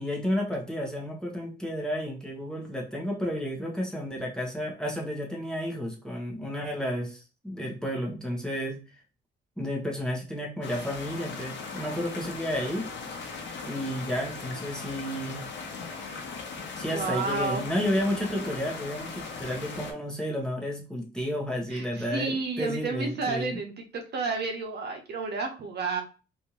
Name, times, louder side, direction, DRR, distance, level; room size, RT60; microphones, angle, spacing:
voice 1, 0.0-8.8 9.6-12.9 13.7-15.4 16.8-23.6, equal, 5° left, -1 dB, 1.2 m, -32 dB
sound 1, 10.6-19.9, left 4 dB, 65° left, 0.9 m, -39 dB
voice 2, 16.9-17.7 21.7-26.0, right 4 dB, 55° right, 3 dB, 0.9 m, -31 dB
3.3 x 2.7 x 2.9 m, 0.32 s
cardioid pair, 90°, 20 cm